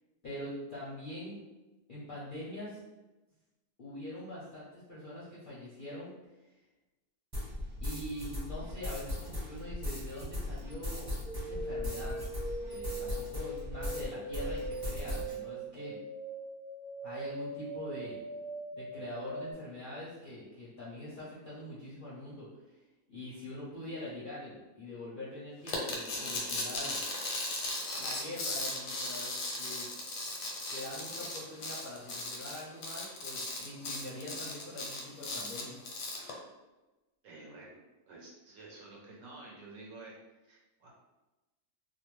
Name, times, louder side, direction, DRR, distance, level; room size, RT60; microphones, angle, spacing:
voice 1, 0.2-1.4 1.9-2.8 3.8-6.1 7.8-12.2 12.7-16.0 17.0-18.2 18.7-22.5 23.1-27.0 27.9-29.9 30.7-35.8, left 1 dB, 55° left, -9 dB, 0.5 m, -43 dB
sound 1, 7.3-14.1 14.3-15.3, left 1 dB, 20° right, 0.7 m, -38 dB
sound 2, 11.2-19.5, right 2 dB, 45° right, 0.9 m, -41 dB
sound 3, 25.7-36.3, left 2 dB, 90° left, 1.2 m, -37 dB
voice 2, 37.2-40.2 40.4-40.9, right 2 dB, 70° right, -3 dB, 0.9 m, -50 dB
2.6 x 2.1 x 3.0 m, 1.1 s
omnidirectional pair, 1.6 m